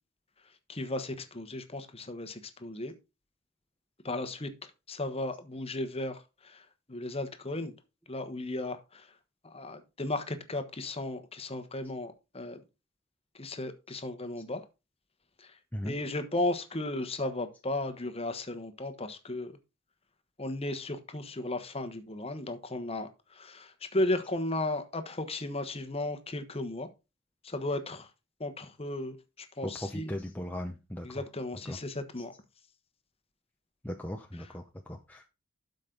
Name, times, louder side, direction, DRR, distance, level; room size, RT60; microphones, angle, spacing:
voice 1, 0.7-2.9 4.0-7.7 8.1-9.1 9.4-12.6 13.3-14.6 15.4-15.6 15.8-19.6 20.4-26.9 27.4-28.1 28.4-30.1 31.0-32.3, left 2 dB, 30° left, 1.2 m, -35 dB
voice 2, 29.6-31.2 31.7-31.8 33.8-35.3, left 1 dB, 10° left, 0.7 m, -38 dB
12.5 x 5.3 x 3.9 m
head